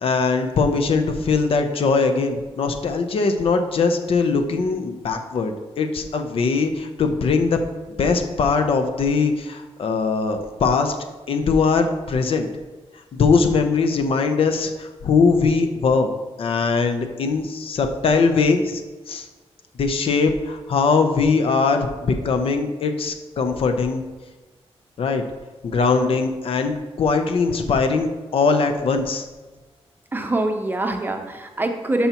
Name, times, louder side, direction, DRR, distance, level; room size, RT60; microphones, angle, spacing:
voice 1, 0.0-7.6 7.9-12.5 13.1-16.1 16.4-19.3 19.8-24.0 25.0-25.2 25.6-29.2, left 4 dB, 60° left, 6 dB, 0.7 m, -21 dB
voice 2, 30.1-32.1, right 1 dB, 20° right, 4 dB, 0.6 m, -24 dB
12.5 x 5.6 x 3.0 m, 1.2 s
wide cardioid pair, 180°, 11 cm